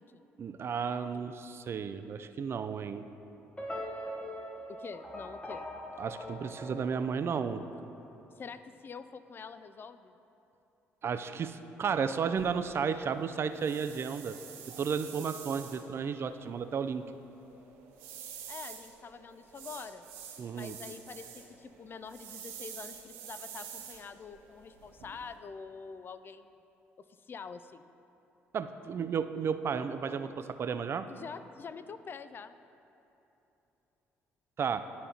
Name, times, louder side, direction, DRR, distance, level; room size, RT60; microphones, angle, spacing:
voice 1, 0.4-3.1 6.0-7.7 11.0-14.4 14.7-17.0 20.4-20.7 28.5-31.1 34.6-34.9, right 6 dB, 45° right, 10 dB, 0.4 m, -33 dB
sound 1, 3.6-7.9, equal, 15° left, 0.9 m, -42 dB
voice 2, 4.7-5.6 8.4-10.1 18.5-20.1 20.5-26.6 27.3-27.9 31.1-32.6, left 5 dB, 40° left, 12 dB, 0.3 m, -46 dB
sound 2, 12.4-25.4, right 7 dB, 80° right, 0.9 m, -48 dB
12.0 x 4.2 x 2.8 m, 2.9 s
hypercardioid pair, 55°, 6 cm